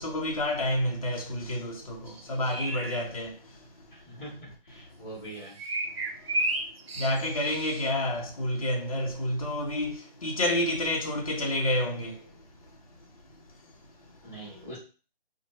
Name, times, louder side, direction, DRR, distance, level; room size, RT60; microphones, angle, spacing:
voice 1, 0.0-3.9 4.1-4.2 6.1-12.8 13.1-14.5, left 1 dB, 35° left, 0.6 m, -30 dB
sound 1, 2.1-3.0 5.6-7.9, right 2 dB, 80° right, 0.6 m, -32 dB
voice 2, 3.9-5.6 14.2-14.8, right 1 dB, 5° left, 0.9 m, -43 dB
2.8 x 2.1 x 2.9 m
figure-of-eight pair, 165°, 30 cm